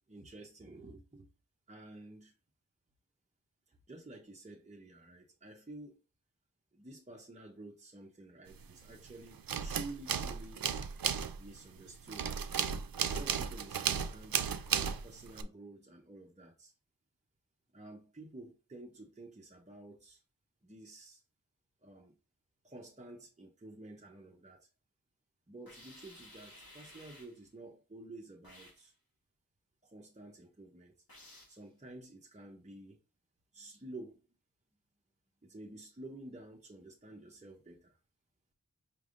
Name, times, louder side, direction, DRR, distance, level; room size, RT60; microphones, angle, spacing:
voice 1, 0.1-1.3 1.7-2.3 3.7-6.0 6.7-10.6 11.4-12.3 13.1-14.4 15.0-16.7 17.7-20.2 20.6-21.2 21.8-22.1 22.6-24.7 25.5-28.9 29.8-30.9 31.5-33.0 33.5-34.2 35.4-38.0, right 2 dB, 20° right, 0.7 m, -51 dB
sound 1, 8.6-9.1 9.3-15.4, right 7 dB, 75° right, 0.5 m, -34 dB
sound 2, 25.7-27.4 28.4-28.9 31.1-31.6, left 1 dB, 75° left, 1.8 m, -55 dB
5.1 x 3.3 x 2.5 m
wide cardioid pair, 45°, 35 cm